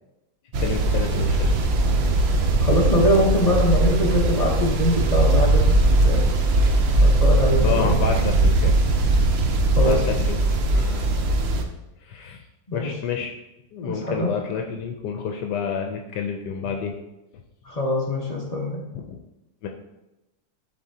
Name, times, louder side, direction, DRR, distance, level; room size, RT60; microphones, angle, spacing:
sound 1, 0.5-11.6, right 2 dB, 55° right, 0.7 m, -20 dB
voice 1, 0.6-1.5 7.6-8.7 9.8-10.4 10.7-11.2 12.0-12.4 12.7-13.3 13.7-17.0 18.9-19.2 19.6-19.7, left 6 dB, 80° left, 3 dB, 1.2 m, -29 dB
voice 2, 2.6-5.8 6.0-6.3 7.0-8.0 9.7-10.0 12.7-12.9 13.8-14.3 17.7-18.8, left 1 dB, 30° left, -2 dB, 0.9 m, -23 dB
11.0 x 4.3 x 2.8 m, 0.96 s
omnidirectional pair, 1.8 m